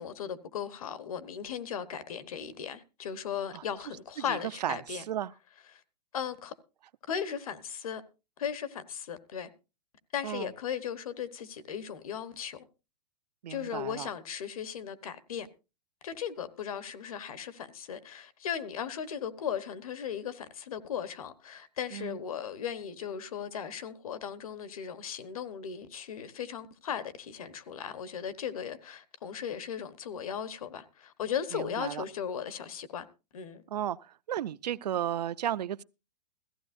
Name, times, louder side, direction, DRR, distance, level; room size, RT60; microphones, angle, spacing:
voice 1, 0.0-5.0 6.1-6.5 7.1-8.0 8.4-9.5 10.1-12.7 13.5-15.5 16.0-33.1 33.3-33.6, left 8 dB, 60° left, 1.1 m, -37 dB
voice 2, 4.3-5.3 10.2-10.5 13.4-14.1 21.9-22.2 31.5-32.0 33.7-35.8, right 11 dB, 75° right, 0.5 m, -34 dB
17.0 x 15.0 x 2.6 m
hypercardioid pair, 175°, 21 cm